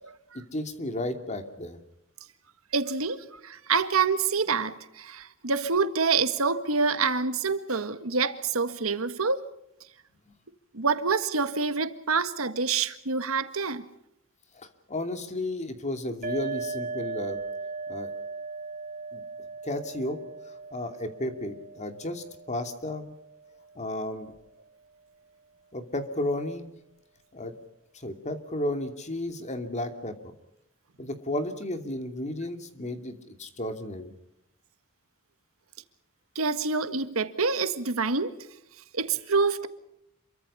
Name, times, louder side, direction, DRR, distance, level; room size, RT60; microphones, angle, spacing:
voice 1, 0.3-1.8 10.3-10.4 14.5-17.4 17.9-18.1 19.1-19.2 19.6-20.2 20.5-23.1 23.7-24.3 25.7-26.7 27.3-27.6 27.9-30.3 31.0-34.1, left 1 dB, 35° left, 2.7 m, -33 dB
voice 2, 2.7-9.4 10.7-13.9 36.3-38.3 38.9-39.7, right 4 dB, 85° right, 1.6 m, -27 dB
sound 1, 16.2-23.7, right 4 dB, 45° right, 4.3 m, -38 dB
28.0 x 23.5 x 5.6 m
head